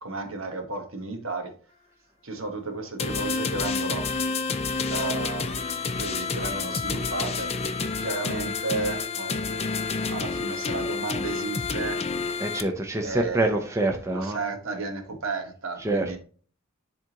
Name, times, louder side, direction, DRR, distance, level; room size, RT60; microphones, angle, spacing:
voice 1, 0.0-1.5 2.2-4.1 4.9-5.6 6.0-7.5 8.0-12.0 13.0-13.6 14.1-16.2, right 3 dB, 70° right, 1.3 m, -33 dB
sound 1, 3.0-12.6, left 4 dB, 30° left, 0.5 m, -29 dB
voice 2, 12.4-14.4 15.8-16.1, right 2 dB, 15° right, 0.6 m, -26 dB
10.5 x 3.6 x 2.9 m
head